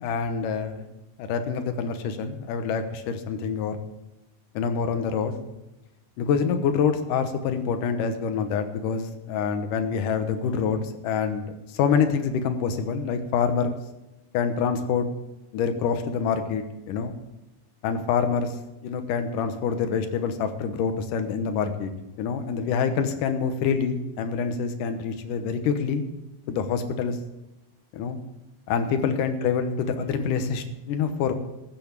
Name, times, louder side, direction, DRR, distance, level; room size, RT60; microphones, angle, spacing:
voice 1, 0.0-0.8 1.2-3.8 4.5-5.4 6.2-13.8 14.3-15.1 15.5-17.1 17.8-18.6 18.8-21.9 22.2-26.0 26.5-27.2 27.9-28.2 28.7-31.3, left 6 dB, 75° left, 7 dB, 2.6 m, -26 dB
14.0 x 8.1 x 7.2 m, 0.97 s
omnidirectional pair, 3.9 m